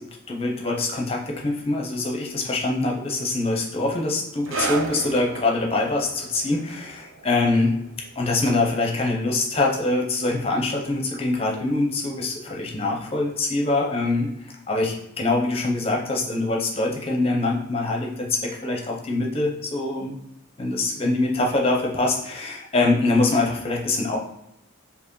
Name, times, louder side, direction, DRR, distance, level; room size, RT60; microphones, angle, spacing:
voice 1, 0.0-7.8 8.2-20.1 20.6-24.2, left 2 dB, 25° left, 0 dB, 0.7 m, -24 dB
sound 1, 4.4-11.4 11.7-11.9 12.7-12.8, right 3 dB, 70° right, 0.6 m, -36 dB
4.6 x 2.8 x 3.1 m, 0.81 s
head